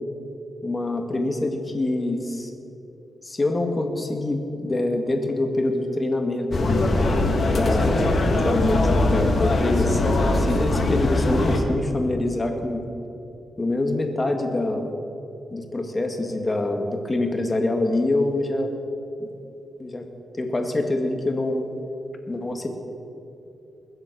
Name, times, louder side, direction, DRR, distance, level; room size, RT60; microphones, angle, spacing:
voice 1, 0.6-2.5 3.2-6.9 7.5-8.0 8.3-12.8 13.6-14.8 15.5-18.7 19.8-20.1 20.4-21.7 22.3-22.7, left 2 dB, 25° left, 4 dB, 1.8 m, -25 dB
sound 1, 6.5-11.6, left 2 dB, 45° left, 1.8 m, -21 dB
21.0 x 7.8 x 6.1 m, 2.8 s
cardioid pair, 90°, 0 cm